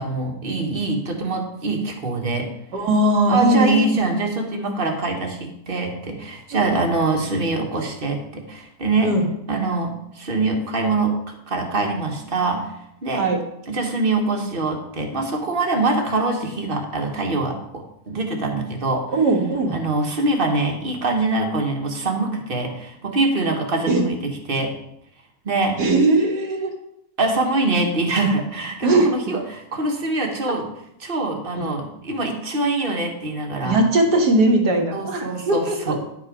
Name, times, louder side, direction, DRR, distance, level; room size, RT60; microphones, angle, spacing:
voice 1, 0.0-2.5 3.3-9.1 9.5-12.7 13.0-13.3 13.7-19.1 19.7-24.7 25.4-25.8 27.2-30.6 31.0-33.8 34.9-36.0, right 2 dB, 35° right, 2 dB, 1.5 m, -24 dB
voice 2, 2.7-4.1 6.5-6.6 9.0-9.3 13.2-13.4 19.1-19.8 23.9-24.0 25.8-26.7 28.8-29.1 33.6-35.9, right 2 dB, 80° right, 2 dB, 2.1 m, -19 dB
10.5 x 5.6 x 4.9 m, 0.77 s
omnidirectional pair, 1.8 m